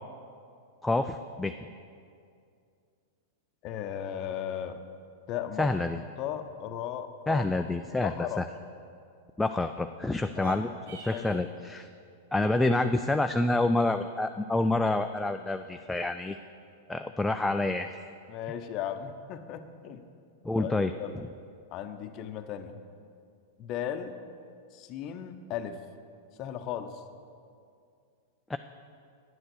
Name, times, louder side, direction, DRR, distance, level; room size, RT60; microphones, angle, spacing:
voice 1, 0.8-1.5 5.6-6.0 7.3-8.5 9.4-10.7 11.0-11.9 12.3-16.4 16.9-17.9 20.4-20.9 28.5-28.6, left 2 dB, 10° left, 7 dB, 0.3 m, -27 dB
voice 2, 3.6-4.8 5.3-7.6 7.9-8.4 10.4-10.6 11.1-11.5 18.3-20.1 20.5-21.2 21.7-22.8 23.6-24.2 24.7-25.8 26.4-27.0, left 9 dB, 45° left, 8 dB, 0.7 m, -36 dB
sound 1, 10.3-11.5, right 4 dB, 75° right, 1.1 m, -45 dB
9.6 x 7.8 x 6.3 m, 2.3 s
hypercardioid pair, 105°, 0 cm